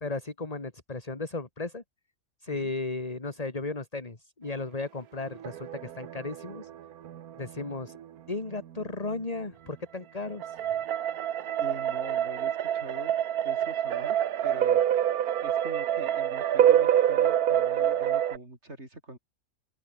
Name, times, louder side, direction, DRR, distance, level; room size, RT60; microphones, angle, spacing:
voice 1, 0.0-1.8 2.4-6.7 7.4-8.0 8.3-10.6, left 3 dB, 25° left, 2.2 m, -35 dB
sound 1, 5.3-8.0 10.4-18.4, right 10 dB, 80° right, 1.4 m, -26 dB
voice 2, 11.6-13.1 13.4-14.8 15.4-19.2, right 2 dB, 45° right, 6.4 m, -43 dB
omnidirectional pair, 1.6 m